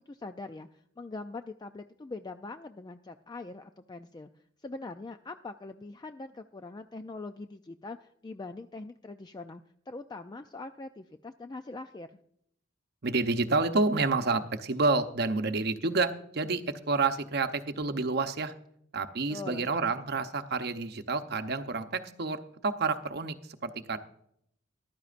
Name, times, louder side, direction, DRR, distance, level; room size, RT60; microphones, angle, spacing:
voice 1, 0.1-4.3 4.6-12.1 19.3-19.7, left 3 dB, 20° left, 8 dB, 0.3 m, -42 dB
voice 2, 13.0-18.5 18.9-24.0, right 3 dB, 55° right, 9 dB, 0.8 m, -29 dB
14.5 x 12.0 x 2.5 m, 0.71 s
head